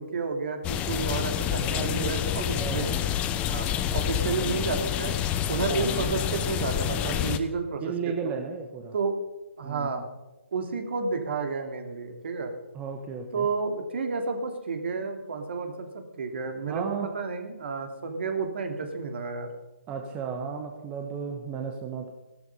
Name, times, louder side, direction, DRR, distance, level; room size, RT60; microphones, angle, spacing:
voice 1, 0.0-3.0 3.4-3.7 3.9-5.1 5.5-8.4 8.9-9.1 9.6-10.0 10.5-12.5 13.3-19.5, right 4 dB, 50° right, 5 dB, 2.9 m, -31 dB
sound 1, 0.6-7.4, left 10 dB, 15° left, 0.8 m, -28 dB
voice 2, 1.6-3.0 3.9-4.0 5.7-6.1 7.8-8.9 9.6-9.9 12.7-13.5 16.7-17.1 19.9-22.1, right 6 dB, 20° right, 3 dB, 1.3 m, -34 dB
15.5 x 13.0 x 5.5 m, 1.0 s
figure-of-eight pair, 140°, 7 cm